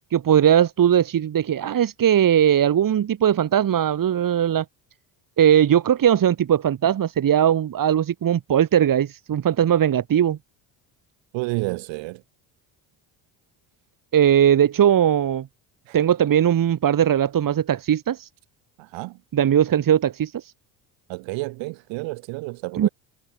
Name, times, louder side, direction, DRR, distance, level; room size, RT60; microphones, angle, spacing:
voice 1, 0.1-4.6 5.4-10.4 14.1-15.5 15.9-18.3 19.3-20.4 22.8-22.9, right 9 dB, 45° right, 2.8 m, -19 dB
voice 2, 11.3-12.2 15.9-16.0 18.8-19.2 21.1-22.9, right 24 dB, 80° right, 7.0 m, -30 dB
supercardioid pair, 85°, 44 cm